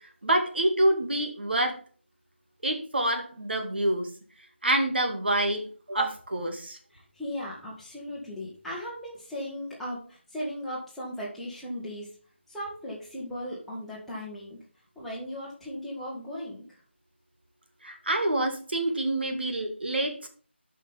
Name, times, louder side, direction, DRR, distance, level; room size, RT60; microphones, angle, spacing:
voice 1, 0.2-1.8 2.6-4.1 4.6-6.8 17.8-20.3, right 1 dB, 60° right, 4 dB, 2.2 m, -27 dB
voice 2, 7.1-12.1 12.5-14.6 14.9-16.6, equal, ahead, -7 dB, 1.5 m, -37 dB
12.0 x 5.7 x 3.5 m, 0.40 s
figure-of-eight pair, 165°, 6 cm